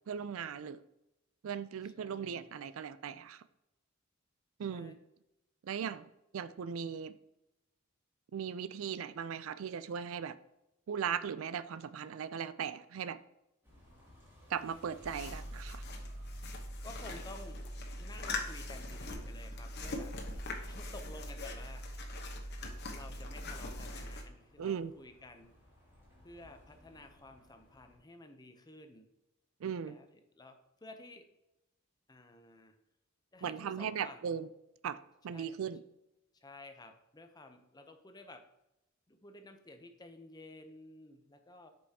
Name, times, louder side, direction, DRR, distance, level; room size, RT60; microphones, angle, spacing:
voice 1, 0.1-0.8 1.4-3.4 4.6-5.0 5.6-7.1 8.3-10.4 10.9-13.2 14.5-15.8 24.6-24.9 29.6-30.0 33.4-34.5 34.8-35.0 35.2-35.8, right 7 dB, 80° right, 15 dB, 0.4 m, -38 dB
voice 2, 1.8-2.5 4.7-5.0 16.8-17.6 18.0-20.1 20.7-21.8 22.9-25.5 26.2-29.1 29.8-30.1 30.3-31.2 32.1-32.8 33.3-34.2 35.3-35.6 36.3-38.4 39.1-41.7, left 2 dB, 20° left, 6 dB, 0.7 m, -53 dB
sound 1, 13.6-28.0, left 1 dB, 10° right, 2.5 m, -63 dB
sound 2, 15.0-24.2, left 1 dB, 55° left, 1.0 m, -41 dB
7.9 x 5.4 x 2.8 m, 0.90 s
head